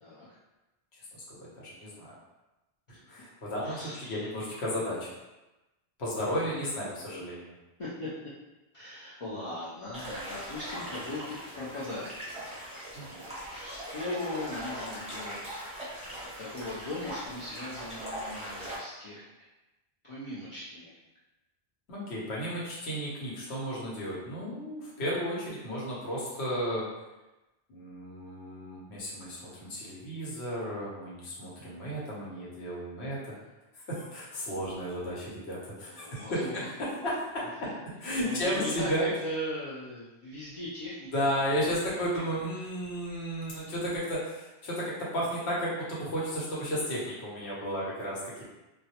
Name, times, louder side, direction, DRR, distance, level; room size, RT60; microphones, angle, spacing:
voice 1, 0.9-2.2 2.9-5.1 6.0-7.5 12.9-13.2 21.9-26.8 27.7-33.3 33.7-36.6 37.0-37.5 38.0-39.1 41.1-48.4, equal, 80° left, -6 dB, 1.0 m, -33 dB
voice 2, 3.6-4.1 7.8-8.1 8.7-15.4 16.4-19.2 20.1-20.9 35.9-36.7 38.2-42.2, left 1 dB, 60° left, -8 dB, 0.3 m, -39 dB
sound 1, 9.9-18.8, equal, 5° right, 0.6 m, -40 dB
2.3 x 2.0 x 2.8 m, 1.0 s
omnidirectional pair, 1.1 m